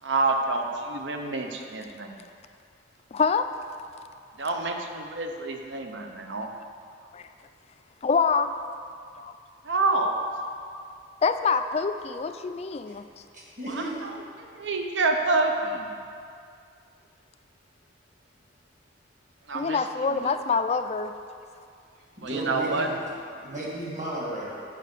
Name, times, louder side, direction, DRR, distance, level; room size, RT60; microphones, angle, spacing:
voice 1, 0.0-2.2 4.4-6.5 9.6-10.2 13.7-14.1 14.4-15.9 19.5-20.3 22.2-22.9, right 3 dB, 70° right, 3 dB, 0.7 m, -28 dB
voice 2, 3.1-3.5 7.1-7.2 8.0-8.5 9.2-9.3 11.2-13.0 19.5-21.1, left 5 dB, 35° left, 9 dB, 0.3 m, -25 dB
voice 3, 13.3-13.9 21.9-22.9 23.4-24.7, right 1 dB, 40° right, -5 dB, 2.3 m, -34 dB
7.5 x 5.3 x 6.7 m, 2.4 s
head